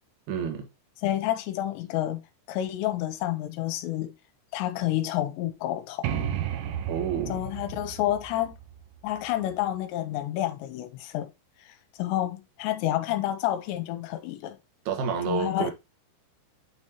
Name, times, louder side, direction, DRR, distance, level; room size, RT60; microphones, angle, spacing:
voice 1, 0.3-0.7 6.9-7.5 14.9-15.7, right 6 dB, 60° right, 2.2 m, -29 dB
voice 2, 1.0-2.2 2.5-4.1 4.5-6.3 7.3-8.6 9.0-11.3 11.6-14.6 15.3-15.7, left 13 dB, 85° left, 2.9 m, -29 dB
sound 1, 6.0-9.7, right 10 dB, 85° right, 3.2 m, -34 dB
9.0 x 4.4 x 2.9 m
omnidirectional pair, 5.1 m